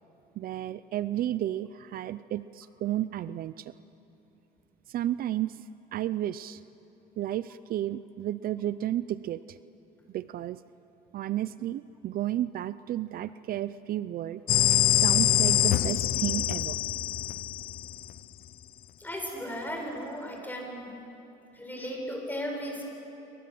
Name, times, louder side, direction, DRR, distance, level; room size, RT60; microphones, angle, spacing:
voice 1, 0.4-3.7 4.9-5.6 5.9-6.6 7.2-9.6 10.1-10.6 11.1-14.4 14.7-16.8, right 13 dB, 60° right, 15 dB, 0.6 m, -32 dB
sound 1, 14.5-18.2, left 13 dB, 60° left, 0.6 m, -25 dB
voice 2, 19.0-20.9 21.5-22.8, equal, 10° left, 1 dB, 7.1 m, -36 dB
27.5 x 24.0 x 7.7 m, 3.0 s
cardioid pair, 110°, 17 cm